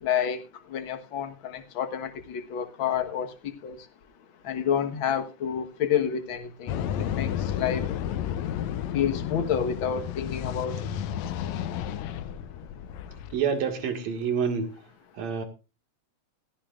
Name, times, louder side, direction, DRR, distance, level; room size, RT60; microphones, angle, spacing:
voice 1, 0.0-0.4 0.7-3.3 3.6-3.8 4.4-6.7 7.1-7.3 7.6-7.9 8.9-10.7, left 8 dB, 50° left, 6 dB, 1.7 m, -28 dB
sound 1, 6.7-13.4, left 10 dB, 75° left, 1.9 m, -32 dB
voice 2, 13.3-14.7 15.1-15.5, right 6 dB, 65° right, 6 dB, 3.2 m, -27 dB
17.0 x 15.0 x 2.5 m, 0.30 s
omnidirectional pair, 3.4 m